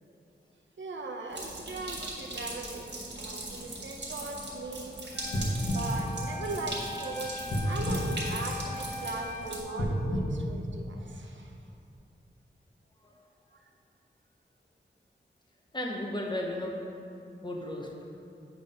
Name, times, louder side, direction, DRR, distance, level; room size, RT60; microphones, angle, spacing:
voice 1, 0.8-2.8 3.1-5.1 5.7-7.4 7.6-11.5, right 3 dB, 85° right, 2 dB, 0.7 m, -39 dB
sound 1, 1.3-9.6, right 2 dB, 65° right, 1.6 m, -40 dB
Wind instrument woodwind instrument, 5.1-9.6, left 2 dB, 50° left, 0.9 m, -41 dB
sound 2, 5.3-6.9 7.5-9.0 9.7-11.4 11.9-12.0, equal, 70° left, 1.4 m, -32 dB
voice 2, 15.7-16.8 17.4-18.1, left 1 dB, 25° left, -1 dB, 0.9 m, -34 dB
8.1 x 3.5 x 5.4 m, 2.6 s
wide cardioid pair, 95°, 19 cm